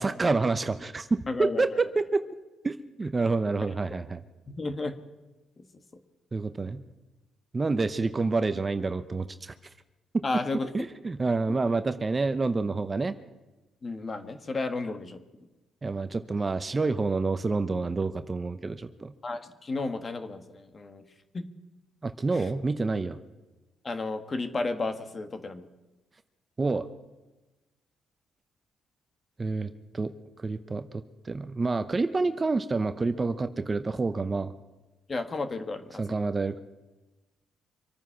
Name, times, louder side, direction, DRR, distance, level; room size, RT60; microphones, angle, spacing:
voice 1, 0.0-1.7 2.0-2.2 2.6-4.2 6.3-6.8 7.5-9.5 10.1-10.2 10.7-13.1 15.8-19.1 22.0-23.2 26.6-26.9 29.4-30.1 30.4-34.5 36.0-36.6, right 3 dB, 25° right, 11 dB, 0.8 m, -28 dB
voice 2, 1.3-1.8 4.5-4.9 5.6-5.7 10.2-10.7 13.8-15.2 19.2-21.0 21.3-21.4 22.3-22.5 23.8-25.7 35.1-36.2, left 3 dB, 35° left, 8 dB, 1.5 m, -33 dB
25.0 x 9.3 x 5.9 m, 1.1 s
cardioid pair, 90°, 0 cm